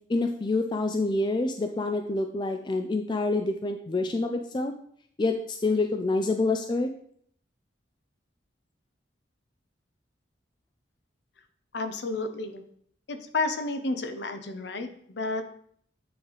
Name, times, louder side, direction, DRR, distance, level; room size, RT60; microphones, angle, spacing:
voice 1, 0.1-4.7 5.2-6.9, left 2 dB, 25° left, 5 dB, 0.3 m, -27 dB
voice 2, 11.7-12.6 13.1-15.4, left 3 dB, 60° left, 8 dB, 0.6 m, -31 dB
8.6 x 3.4 x 3.9 m, 0.62 s
head